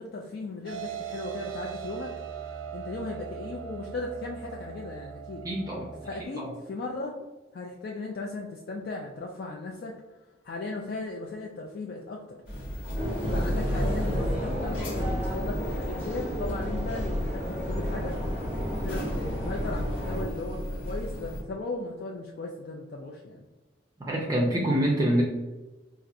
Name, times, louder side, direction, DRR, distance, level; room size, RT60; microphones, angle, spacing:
voice 1, 0.0-2.1 2.7-5.5 6.0-7.1 7.5-10.0 10.4-12.4 13.3-18.2 18.8-23.5, left 3 dB, 50° left, 0 dB, 0.3 m, -37 dB
sound 1, 0.7-6.2, right 8 dB, 80° right, 0.4 m, -39 dB
voice 2, 5.4-5.9 6.3-6.5 24.1-25.2, right 1 dB, 20° right, -3 dB, 0.4 m, -25 dB
sound 2, 12.5-21.4, equal, 85° left, 1.3 m, -33 dB
sound 3, 12.9-20.2, equal, 35° left, 0.9 m, -33 dB
4.1 x 2.4 x 2.5 m, 1.2 s
head